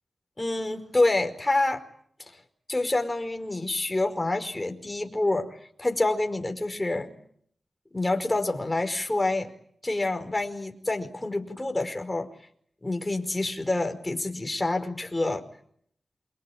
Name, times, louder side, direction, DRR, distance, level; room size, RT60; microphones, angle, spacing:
voice 1, 0.4-1.8 2.7-7.1 7.9-9.5 9.8-12.3 12.8-15.4, left 2 dB, 25° left, 6 dB, 5.1 m, -27 dB
28.0 x 24.5 x 8.8 m, 0.68 s
cardioid pair, 50°, 0 cm